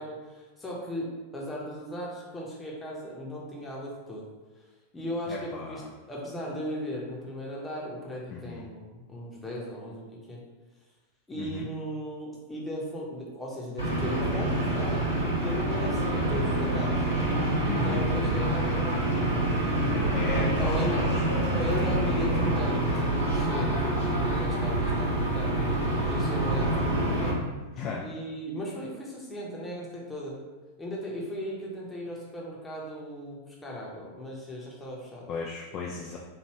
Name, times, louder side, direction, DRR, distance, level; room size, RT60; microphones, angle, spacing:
voice 1, 0.0-4.3 4.9-5.8 6.1-10.4 11.3-15.0 15.3-17.1 17.6-19.4 20.4-25.6 26.1-27.4 28.0-30.4 30.8-35.3, equal, 10° left, -4 dB, 0.8 m, -37 dB
voice 2, 5.3-5.9 8.3-8.7 11.4-11.7 17.7-18.1 20.1-21.2 27.8-28.0 35.3-36.2, left 4 dB, 35° left, -2 dB, 0.3 m, -36 dB
sound 1, 13.8-27.3, right 1 dB, 80° right, 1.2 m, -26 dB
3.2 x 2.5 x 3.0 m, 1.2 s
figure-of-eight pair, 90°, 0 cm